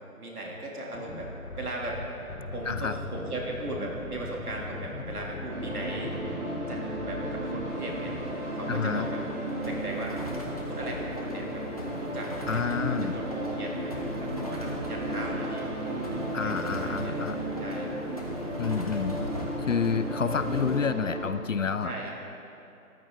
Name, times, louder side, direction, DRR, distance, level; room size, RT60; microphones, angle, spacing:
voice 1, 0.0-2.0 2.5-6.2 6.7-8.1 8.5-9.2 9.7-10.2 10.7-12.7 13.0-15.7 16.4-17.2 17.6-17.9 21.8-22.1, right 2 dB, 75° right, -2 dB, 3.1 m, -37 dB
sound 1, 0.9-8.3, left 3 dB, 80° left, 1.4 m, -40 dB
sound 2, 5.5-21.3, right 1 dB, 50° right, 2.7 m, -35 dB
sound 3, 7.7-20.8, left 1 dB, 25° left, 0.9 m, -38 dB
voice 2, 8.7-9.1 12.5-13.2 16.3-17.4 18.6-19.2 19.6-21.9, left 6 dB, 60° left, 12 dB, 0.5 m, -29 dB
14.0 x 11.0 x 3.9 m, 2.8 s
hypercardioid pair, 175°, 45 cm